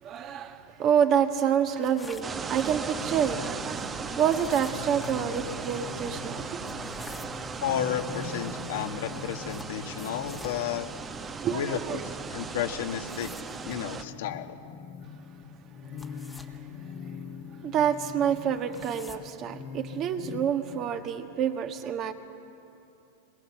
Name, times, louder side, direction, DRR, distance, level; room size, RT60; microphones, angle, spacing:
voice 1, 0.0-6.6 11.4-12.0 16.1-16.6 16.8-17.0 17.6-22.1, right 8 dB, 40° right, 6 dB, 1.5 m, -28 dB
sound 1, 1.8-2.7 4.2-5.2 6.6-7.5 9.5-10.6 12.8-13.8 15.8-16.6 18.4-19.2, left 2 dB, 5° left, 1.5 m, -47 dB
sound 2, 2.2-14.0, right 5 dB, 20° right, 1.1 m, -37 dB
sound 3, 3.0-21.0, left 5 dB, 45° left, 1.4 m, -44 dB
voice 2, 7.6-10.9 11.5-13.3 13.7-14.6, left 9 dB, 75° left, 5 dB, 1.6 m, -32 dB
21.5 x 21.5 x 7.4 m, 2.7 s
hypercardioid pair, 120°, 0 cm